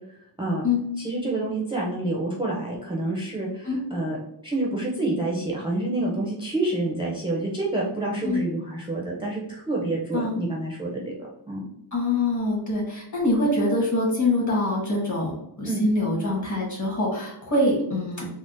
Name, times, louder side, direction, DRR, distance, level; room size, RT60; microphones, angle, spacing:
voice 1, 0.1-0.6 1.0-4.2 4.4-11.1 11.5-11.7 15.6-15.8, right 2 dB, 10° right, -3 dB, 0.4 m, -28 dB
voice 2, 11.9-18.3, left 2 dB, 40° left, -2 dB, 1.2 m, -24 dB
3.6 x 2.1 x 2.5 m, 0.80 s
wide cardioid pair, 145°, 44 cm